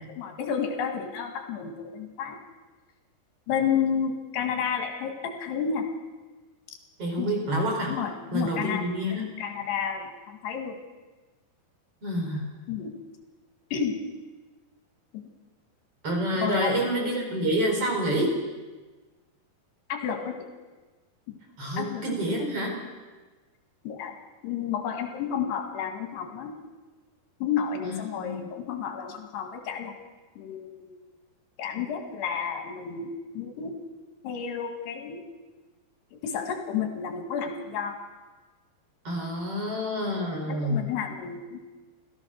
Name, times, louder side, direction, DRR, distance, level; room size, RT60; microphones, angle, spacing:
voice 1, 0.0-2.4 3.5-5.9 7.2-7.3 7.9-8.8 9.2-10.8 12.7-12.9 13.7-14.0 15.1-15.2 16.4-16.9 19.9-20.5 21.3-21.4 21.8-22.0 23.8-24.1 24.4-26.6 27.4-29.9 30.4-31.0 31.6-33.7 34.2-35.2 36.2-38.0 40.4-41.6, left 7 dB, 85° left, 4 dB, 4.0 m, -31 dB
voice 2, 7.0-7.9 8.3-9.3 12.0-12.5 16.0-18.3 21.6-22.8 27.8-28.5 39.0-40.9, equal, 35° right, 1 dB, 5.4 m, -28 dB
29.5 x 13.5 x 6.4 m, 1.3 s
omnidirectional pair, 4.7 m